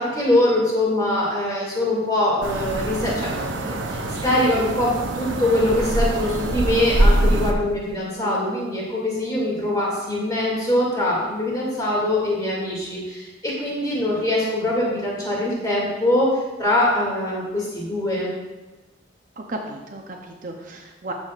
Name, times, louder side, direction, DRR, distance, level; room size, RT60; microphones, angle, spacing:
voice 1, 0.0-16.3 16.6-18.3, left 1 dB, 20° left, -5 dB, 2.3 m, -23 dB
sound 1, 2.4-7.5, right 1 dB, 80° right, 0.7 m, -23 dB
voice 2, 19.4-21.1, right 2 dB, 45° right, 1 dB, 0.6 m, -34 dB
12.5 x 6.2 x 2.4 m, 1.2 s
head